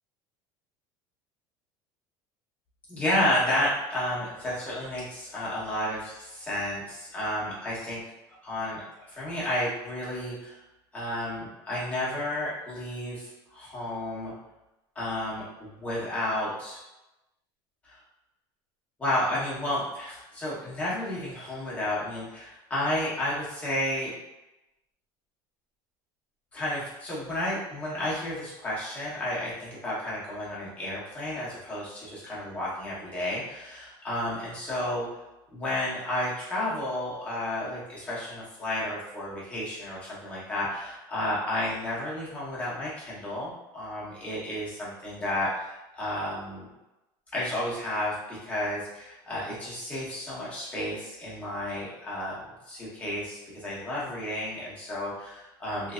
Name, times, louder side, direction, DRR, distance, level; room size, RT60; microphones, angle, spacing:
voice 1, 2.9-8.0 8.4-8.8 9.1-10.6 10.9-14.3 14.9-16.8 17.8-18.0 19.0-24.1 26.5-35.1 35.5-46.7 47.3-55.9, left 1 dB, 15° left, -8 dB, 1.3 m, -32 dB
3.3 x 3.1 x 2.5 m, 0.97 s
cardioid pair, 155°, 10 cm